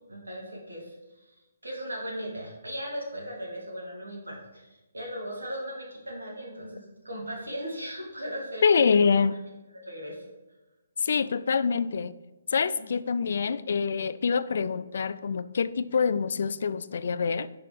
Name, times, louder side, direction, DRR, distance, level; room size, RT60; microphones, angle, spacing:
voice 1, 0.1-1.0 1.6-8.6 9.7-10.2 12.8-12.9, equal, 90° right, 2.5 m, -37 dB
voice 2, 8.6-9.4 11.0-12.2 12.5-17.5, left 5 dB, 60° left, 0.3 m, -25 dB
5.8 x 5.1 x 4.6 m
figure-of-eight pair, 140°, 0 cm